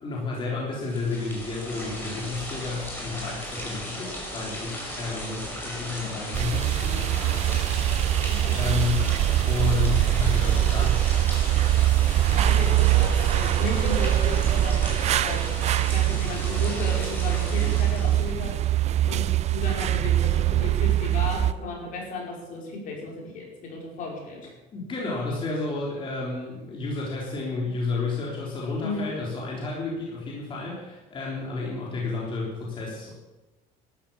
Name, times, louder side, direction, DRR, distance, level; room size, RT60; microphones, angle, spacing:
voice 1, 0.0-11.0 24.7-33.2, left 4 dB, 30° left, -4 dB, 3.7 m, -31 dB
sound 1, 0.7-18.4, equal, 15° left, 5.2 m, -36 dB
sound 2, 6.3-21.5, right 13 dB, 45° right, 0.5 m, -23 dB
voice 2, 8.3-8.6 12.3-15.4 15.8-19.2 19.5-24.5 28.8-29.1, left 3 dB, 55° left, -1 dB, 5.2 m, -35 dB
13.0 x 11.5 x 7.1 m, 1.1 s
cardioid pair, 140°, 16 cm